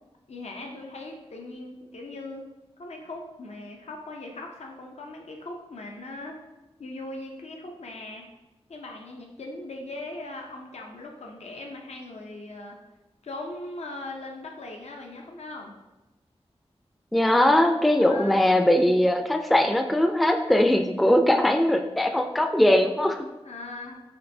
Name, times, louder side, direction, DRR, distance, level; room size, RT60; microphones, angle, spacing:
voice 1, 0.3-2.5 2.8-6.4 6.8-8.2 8.7-12.8 13.2-15.7 18.0-18.4 23.4-24.0, left 2 dB, 80° left, 1 dB, 0.5 m, -39 dB
voice 2, 17.1-23.3, left 1 dB, ahead, 5 dB, 0.3 m, -20 dB
5.2 x 2.6 x 2.6 m, 1.0 s
cardioid pair, 50°, 11 cm